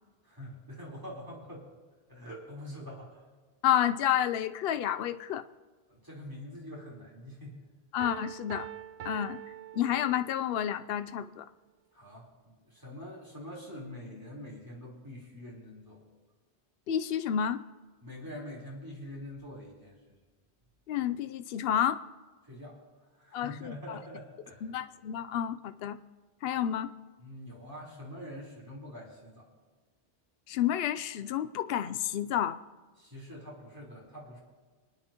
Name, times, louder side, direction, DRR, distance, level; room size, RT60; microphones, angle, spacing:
voice 1, 0.2-1.7 2.1-3.3 5.9-7.5 11.9-16.0 18.0-19.9 22.4-22.8 23.2-24.8 27.2-29.5 33.0-34.4, left 1 dB, 20° right, -5 dB, 3.8 m, -45 dB
voice 2, 3.6-5.4 7.9-8.7 9.0-9.4 9.7-11.4 16.9-17.6 20.9-22.0 23.3-24.0 24.6-26.0 26.4-26.9 30.5-32.6, left 10 dB, 75° left, 11 dB, 0.8 m, -30 dB
Piano, 8.0-10.6, right 11 dB, 80° right, 0.9 m, -44 dB
27.5 x 9.9 x 3.0 m, 1.4 s
omnidirectional pair, 1.0 m